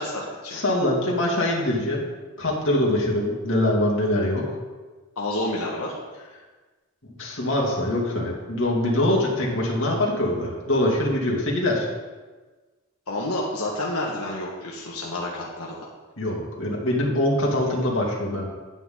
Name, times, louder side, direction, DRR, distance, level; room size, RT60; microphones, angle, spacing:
voice 1, 0.0-0.6 5.2-6.0 13.1-15.9, left 1 dB, 85° left, -4 dB, 1.7 m, -29 dB
voice 2, 0.5-2.1 2.4-4.5 7.2-11.9 16.2-18.5, left 1 dB, 60° left, -3 dB, 2.5 m, -23 dB
11.0 x 9.2 x 3.9 m, 1.3 s
head